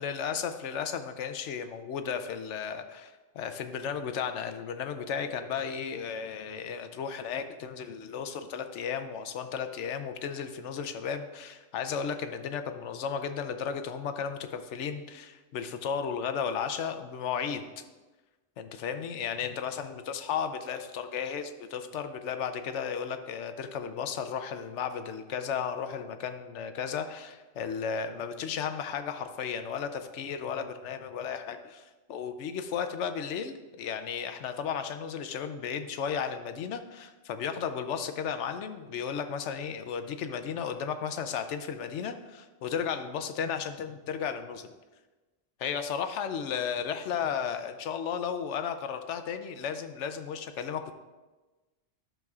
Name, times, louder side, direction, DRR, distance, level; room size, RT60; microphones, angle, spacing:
voice 1, 0.0-17.7 18.6-31.8 32.1-44.7 45.6-50.9, left 7 dB, 75° left, 9 dB, 0.9 m, -34 dB
12.0 x 6.5 x 2.4 m, 1.2 s
omnidirectional pair, 1.2 m